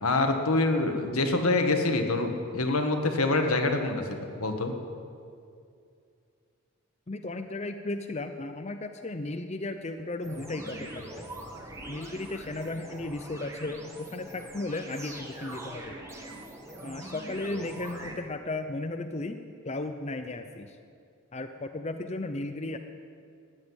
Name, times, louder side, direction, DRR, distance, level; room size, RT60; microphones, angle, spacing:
voice 1, 0.0-4.0 4.4-4.7, left 2 dB, 85° left, 4 dB, 1.6 m, -25 dB
voice 2, 7.1-11.3 11.9-16.0 16.8-19.4 19.6-20.8 21.3-22.8, left 2 dB, 30° left, 7 dB, 0.5 m, -35 dB
sound 1, 10.2-18.1, right 1 dB, 15° right, 1.5 m, -43 dB
14.0 x 9.3 x 9.7 m, 2.4 s
head